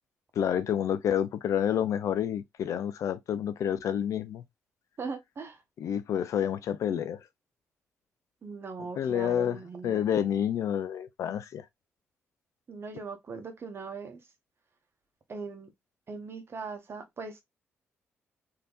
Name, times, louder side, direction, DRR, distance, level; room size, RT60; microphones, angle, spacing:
voice 1, 0.4-4.4 5.8-7.2 9.0-11.6, left 9 dB, 70° left, 0.5 m, -29 dB
voice 2, 5.0-5.6 8.4-10.0 12.7-14.2 15.3-15.7 16.1-17.4, right 4 dB, 50° right, 1.1 m, -40 dB
3.4 x 2.9 x 2.4 m
supercardioid pair, 60°, 5 cm